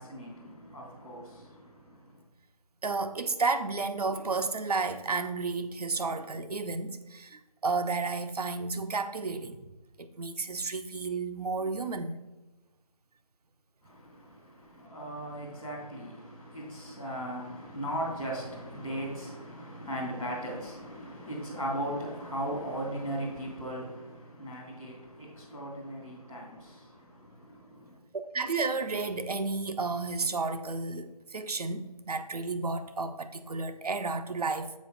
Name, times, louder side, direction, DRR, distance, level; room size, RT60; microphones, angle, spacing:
voice 1, 0.0-2.2 13.8-28.0, right 1 dB, 5° right, 0.5 m, -38 dB
voice 2, 2.8-9.6 10.0-12.2 28.3-34.7, right 4 dB, 70° right, 0.8 m, -32 dB
7.4 x 5.3 x 3.9 m
figure-of-eight pair, 170°, 20 cm